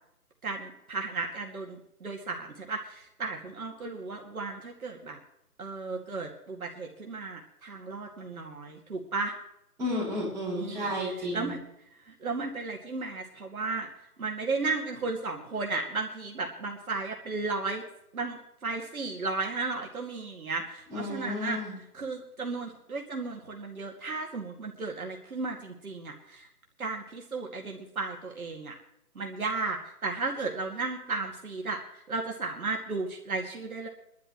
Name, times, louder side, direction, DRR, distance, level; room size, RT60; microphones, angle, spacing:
voice 1, 0.4-5.2 5.6-9.3 10.6-10.9 11.3-11.6 12.1-13.9 14.2-17.8 18.1-21.6 21.9-26.5 26.8-28.7 29.2-33.9, right 3 dB, 65° right, 0 dB, 2.4 m, -34 dB
voice 2, 9.8-11.5 20.9-21.8, left 1 dB, 5° right, -12 dB, 7.0 m, -32 dB
23.5 x 12.0 x 3.2 m, 0.82 s
hypercardioid pair, 170°, 46 cm